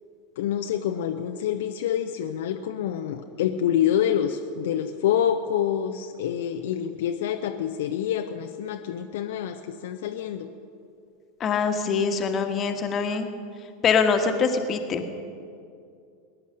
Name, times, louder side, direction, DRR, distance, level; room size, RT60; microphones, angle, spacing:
voice 1, 0.4-10.5, left 10 dB, 60° left, 5 dB, 0.6 m, -27 dB
voice 2, 11.4-13.3 13.8-15.1, left 5 dB, 30° left, 6 dB, 1.4 m, -24 dB
20.5 x 10.5 x 6.5 m, 2.5 s
figure-of-eight pair, 85°, 0 cm